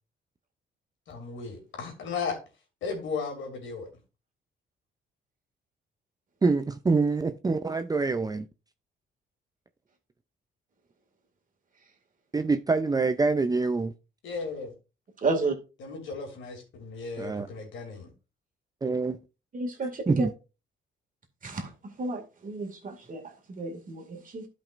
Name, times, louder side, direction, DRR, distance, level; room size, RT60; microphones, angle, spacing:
voice 1, 1.1-2.4 2.8-3.9 14.2-14.7 15.8-18.1, left 5 dB, 75° left, 2.7 m, -35 dB
voice 2, 6.4-8.5 12.3-13.9 17.2-17.5 18.8-19.2 20.1-20.3, right 3 dB, 20° right, 0.5 m, -25 dB
voice 3, 15.2-15.6 19.5-20.3 21.4-21.7 22.0-24.5, right 3 dB, 45° right, 2.2 m, -32 dB
12.0 x 5.3 x 2.5 m
cardioid pair, 90°, 20 cm